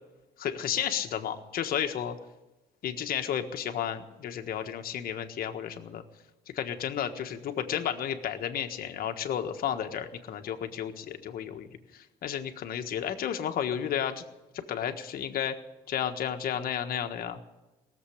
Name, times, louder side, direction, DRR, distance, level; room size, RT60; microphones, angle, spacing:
voice 1, 0.4-2.1 2.8-6.0 6.5-14.2 14.5-15.6 15.9-17.4, left 9 dB, 60° left, 6 dB, 1.5 m, -32 dB
18.5 x 7.5 x 10.0 m, 1.0 s
cardioid pair, 110°, 17 cm